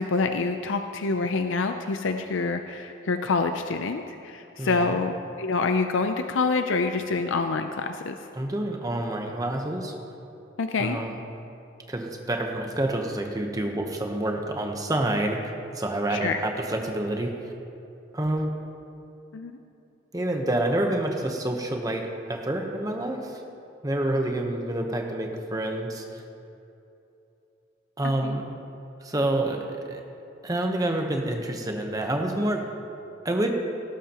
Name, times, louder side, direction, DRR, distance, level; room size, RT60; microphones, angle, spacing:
voice 1, 0.0-5.1 5.4-8.1 10.6-11.0 16.1-16.4 19.3-19.5 28.2-28.4, left 4 dB, 90° left, 7 dB, 0.5 m, -26 dB
voice 2, 4.6-5.0 8.4-9.9 10.8-11.2 11.9-17.4 18.1-18.5 20.1-23.4 23.8-26.2 28.0-28.4 29.0-30.0 30.4-32.7 33.2-33.5, right 1 dB, 20° right, 3 dB, 1.0 m, -28 dB
18.0 x 13.0 x 3.0 m, 2.8 s
head